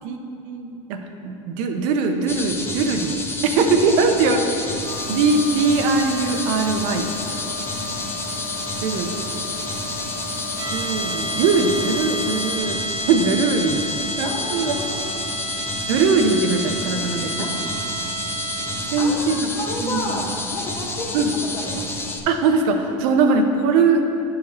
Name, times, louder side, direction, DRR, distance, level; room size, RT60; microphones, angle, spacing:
voice 1, 0.4-1.0 1.2-4.4 5.1-7.1 8.8-9.3 10.7-13.9 14.2-14.7 15.9-17.5 18.9-19.4 19.8-20.0 21.1-21.3 22.3-24.0, right 4 dB, 70° right, 4 dB, 0.7 m, -21 dB
sound 1, 2.3-22.2, left 2 dB, 15° left, 0.8 m, -30 dB
voice 2, 3.8-4.7 14.2-15.3 16.9-17.6 18.7-21.9, left 2 dB, 40° left, -2 dB, 1.6 m, -33 dB
sound 2, 4.8-12.6, left 4 dB, 75° left, 0.9 m, -35 dB
sound 3, 10.6-19.3, right 2 dB, 30° right, 0.6 m, -31 dB
9.9 x 4.9 x 3.1 m, 2.7 s
supercardioid pair, 100°, 17 cm